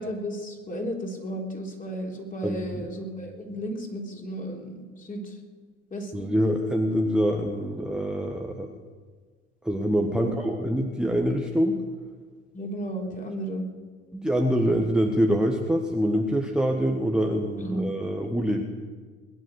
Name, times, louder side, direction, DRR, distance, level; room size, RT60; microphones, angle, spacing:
voice 1, 0.0-5.3 5.9-6.3 10.2-10.5 12.5-13.7 17.6-17.9, equal, 20° left, 1 dB, 3.7 m, -33 dB
voice 2, 2.4-2.9 6.1-8.7 9.6-11.8 14.1-18.6, equal, ahead, 2 dB, 1.4 m, -25 dB
21.0 x 10.5 x 6.5 m, 1.5 s
hypercardioid pair, 70°, 36 cm